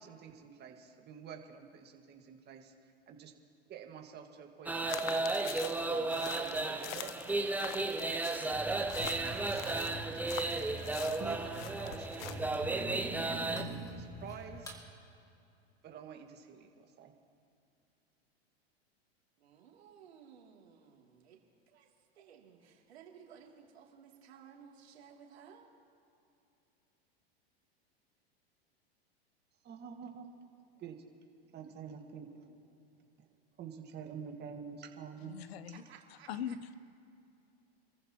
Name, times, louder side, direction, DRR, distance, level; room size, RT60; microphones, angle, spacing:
voice 1, 0.0-3.3 3.7-7.1 8.0-10.0 11.2-14.7 15.8-17.1 29.6-30.3 30.8-31.0 31.4-32.8 33.2-33.3 33.6-35.3, right 7 dB, 35° right, 3 dB, 1.7 m, -48 dB
sound 1, 4.7-13.6, right 2 dB, 5° right, 0.8 m, -34 dB
sound 2, 4.9-12.6, left 14 dB, 50° left, 0.7 m, -46 dB
sound 3, 8.5-14.8, right 1 dB, 10° left, 2.5 m, -45 dB
voice 2, 19.4-21.4 21.7-21.9 22.1-25.7 35.7-36.6, right 7 dB, 85° right, 0 dB, 2.8 m, -57 dB
voice 3, 35.2-35.8 36.1-36.8, left 8 dB, 75° left, 14 dB, 0.9 m, -41 dB
28.0 x 14.5 x 3.0 m, 2.6 s
hypercardioid pair, 120°, 31 cm